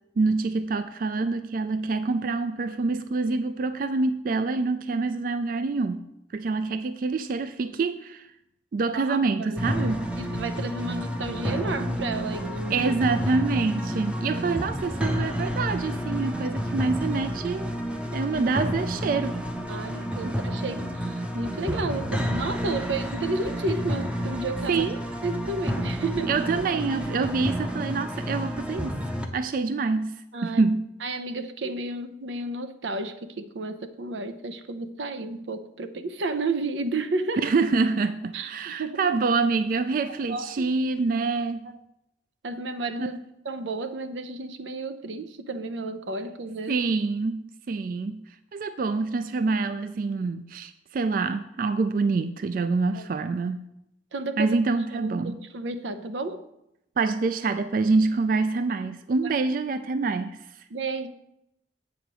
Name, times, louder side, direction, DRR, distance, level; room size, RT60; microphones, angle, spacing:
voice 1, 0.2-6.0 6.3-8.3 8.7-10.1 12.7-17.7 18.1-19.4 20.2-20.3 24.7-25.0 26.3-29.0 29.3-30.9 37.4-41.7 43.0-43.1 46.7-48.2 48.5-53.6 54.4-55.4 57.0-60.4, right 4 dB, 50° right, 12 dB, 0.3 m, -26 dB
voice 2, 8.9-9.6 10.2-12.9 19.7-24.9 25.2-26.4 30.3-30.6 31.0-37.4 38.3-39.0 40.3-40.7 42.4-43.2 43.4-46.8 52.9-53.1 54.1-54.6 54.9-56.4 59.2-59.4 60.7-61.1, right 3 dB, 90° right, 10 dB, 0.6 m, -32 dB
sound 1, 9.6-29.3, equal, 5° right, 0.6 m, -30 dB
8.0 x 5.0 x 6.1 m, 0.84 s
head